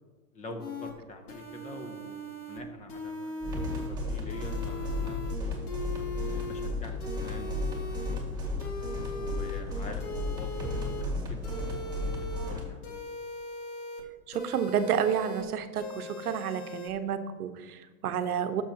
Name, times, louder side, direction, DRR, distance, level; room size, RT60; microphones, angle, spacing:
voice 1, 0.3-3.5 3.9-5.2 6.1-8.3 9.2-11.4 12.0-13.0, left 2 dB, 15° left, 6 dB, 0.8 m, -45 dB
sound 1, 0.6-0.9 1.3-2.6 2.9-3.9 4.3-5.3 5.7-6.7 7.0-8.2 8.6-9.6 10.0-11.0 11.4-12.5 12.8-14.0 14.3-15.4 15.7-16.9, left 2 dB, 80° left, 2.2 m, -40 dB
night club wave night loop by kk final, 3.4-12.6, left 1 dB, 10° right, 1.9 m, -34 dB
voice 2, 14.3-18.6, right 8 dB, 85° right, 9 dB, 0.9 m, -30 dB
11.0 x 6.9 x 2.9 m, 1.3 s
hypercardioid pair, 140°, 44 cm